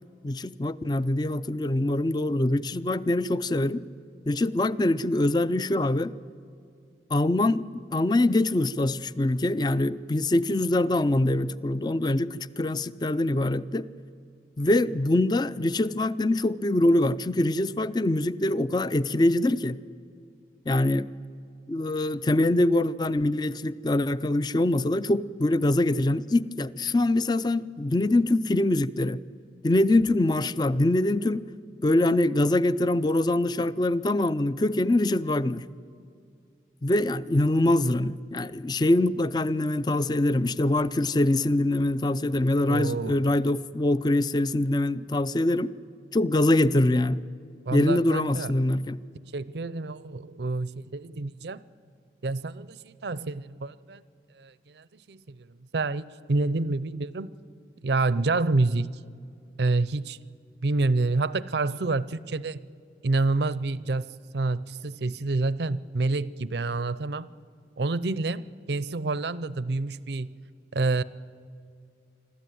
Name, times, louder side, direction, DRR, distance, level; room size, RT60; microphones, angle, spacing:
voice 1, 0.2-3.8 4.3-6.1 7.1-13.9 14.6-19.8 20.7-21.1 21.7-29.2 29.6-31.4 31.8-35.6 36.8-45.7 46.1-47.2 47.7-49.0, left 1 dB, 25° left, 17 dB, 0.4 m, -24 dB
voice 2, 42.7-43.3 47.7-48.5 49.3-51.6 52.2-54.0 54.4-57.4 57.8-58.9 59.6-60.2 60.6-62.6 63.0-67.3 67.8-70.3 70.7-71.0, right 3 dB, 70° right, 18 dB, 0.6 m, -28 dB
26.0 x 13.0 x 9.3 m, 2.4 s
head